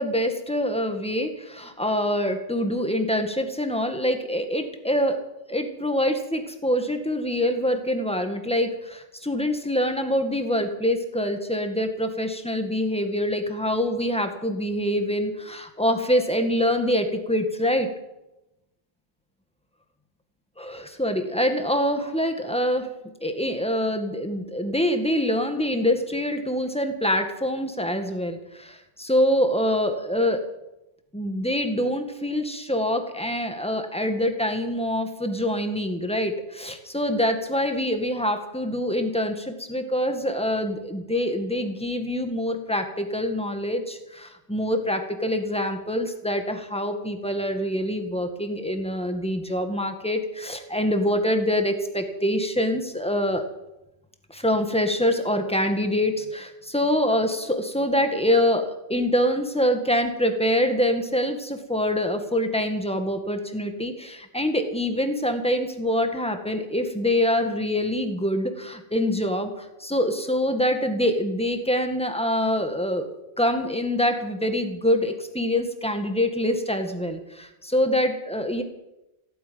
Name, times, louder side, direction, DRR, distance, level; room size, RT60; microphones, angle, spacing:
voice 1, 0.0-5.2 5.5-17.9 20.6-22.9 23.2-30.4 31.1-53.4 54.3-73.1 73.4-78.6, equal, 5° left, 6 dB, 1.7 m, -25 dB
16.0 x 9.0 x 9.4 m, 0.93 s
omnidirectional pair, 1.1 m